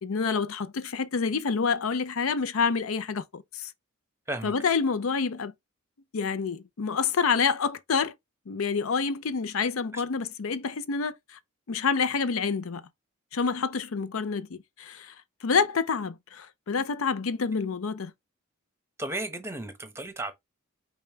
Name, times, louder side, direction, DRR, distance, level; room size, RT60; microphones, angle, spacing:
voice 1, 0.0-3.7 4.4-5.5 6.1-8.1 8.5-11.1 11.7-12.8 13.3-15.1 15.4-18.1, left 5 dB, 70° left, 0.5 m, -28 dB
voice 2, 19.0-20.3, right 1 dB, 10° right, 0.9 m, -34 dB
5.3 x 2.2 x 4.4 m
head